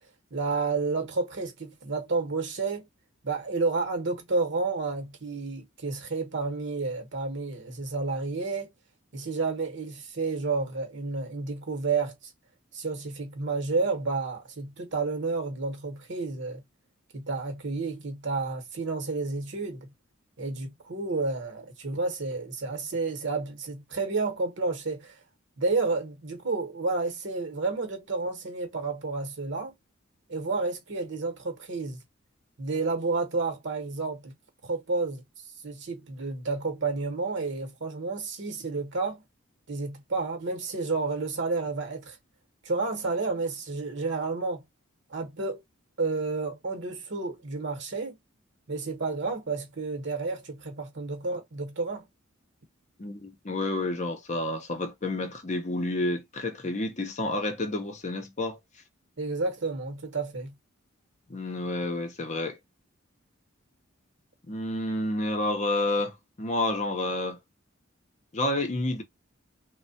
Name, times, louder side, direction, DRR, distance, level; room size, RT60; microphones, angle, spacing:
voice 1, 0.3-2.9 3.2-8.7 9.1-12.1 12.7-16.6 17.1-19.9 20.4-25.1 25.6-29.7 30.3-32.0 32.6-34.3 34.6-35.2 35.6-39.2 39.7-42.2 42.6-44.6 45.1-45.6 46.0-48.2 48.7-52.0 59.2-60.5, right 3 dB, 60° right, 0.9 m, -30 dB
voice 2, 53.0-58.6 61.3-62.6 64.5-67.4 68.3-69.0, left 2 dB, 35° left, 0.6 m, -30 dB
3.2 x 2.1 x 2.6 m
head